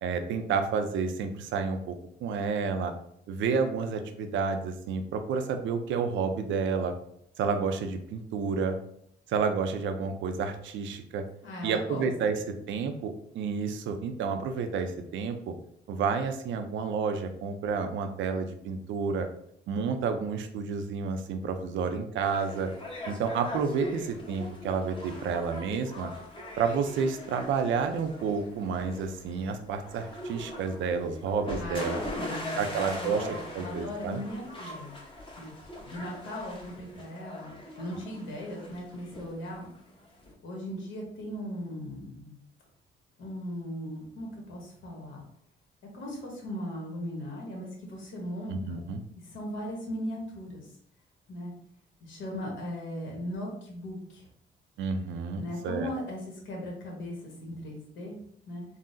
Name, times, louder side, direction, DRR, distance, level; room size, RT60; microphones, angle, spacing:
voice 1, 0.0-2.0 2.2-2.9 3.3-6.9 7.4-8.8 9.3-11.2 11.6-15.5 15.9-19.3 19.7-22.7 23.1-26.1 26.6-32.0 32.6-33.3 33.5-34.2 48.5-49.0 54.8-55.9, right 5 dB, 75° right, 6 dB, 0.4 m, -30 dB
voice 2, 11.4-12.3 31.6-34.9 35.4-35.5 35.8-39.7 40.4-42.4 43.2-45.2 45.9-48.8 49.3-50.7 51.3-51.5 52.0-54.2 55.4-58.2 58.5-58.6, left 1 dB, 75° left, -1 dB, 1.1 m, -38 dB
sound 1, 22.2-40.3, left 1 dB, 25° left, 0.8 m, -41 dB
3.7 x 2.0 x 2.6 m, 0.68 s
cardioid pair, 90°, 20 cm